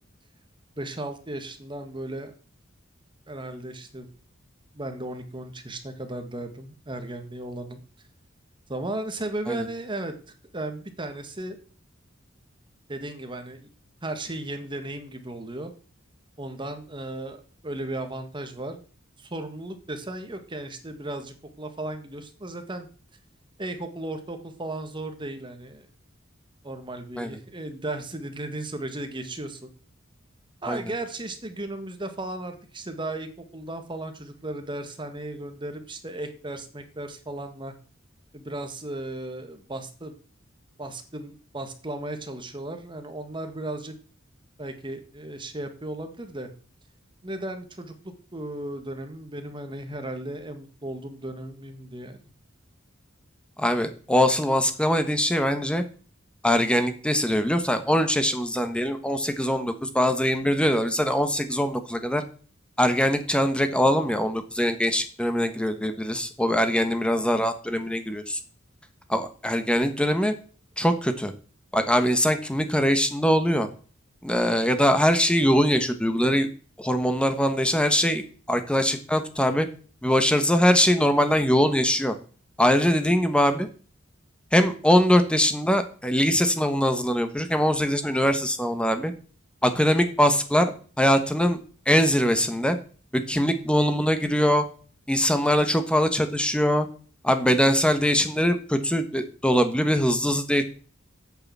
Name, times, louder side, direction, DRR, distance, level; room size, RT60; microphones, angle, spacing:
voice 1, 0.8-2.3 3.3-4.1 4.7-7.8 8.7-10.1 10.5-11.6 12.9-13.7 14.0-15.7 16.4-18.8 19.2-22.9 23.6-25.9 26.6-29.7 30.6-37.7 38.3-40.1 40.8-43.9 44.6-46.5 47.2-52.2, right 1 dB, 25° right, 7 dB, 1.6 m, -35 dB
voice 2, 53.6-55.8 56.4-62.2 62.8-68.4 69.1-70.3 70.8-71.3 71.7-73.7 74.2-76.5 76.8-79.7 80.0-82.1 82.6-83.7 84.5-89.1 89.6-91.6 91.9-92.8 93.1-94.6 95.1-96.9 97.2-100.6, equal, 5° left, 9 dB, 1.3 m, -22 dB
8.9 x 6.7 x 7.5 m, 0.40 s
head